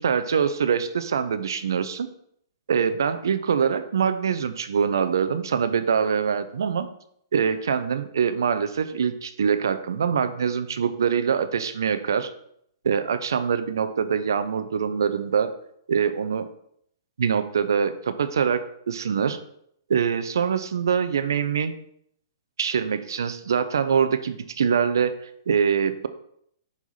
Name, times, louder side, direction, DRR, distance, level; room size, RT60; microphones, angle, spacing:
voice 1, 0.0-2.1 2.7-6.9 7.3-12.3 12.8-15.5 15.9-16.5 17.2-19.4 19.9-21.7 22.6-25.1 25.5-26.1, right 7 dB, 70° right, 12 dB, 0.5 m, -24 dB
5.5 x 4.6 x 4.0 m, 0.70 s
figure-of-eight pair, 120°, 2 cm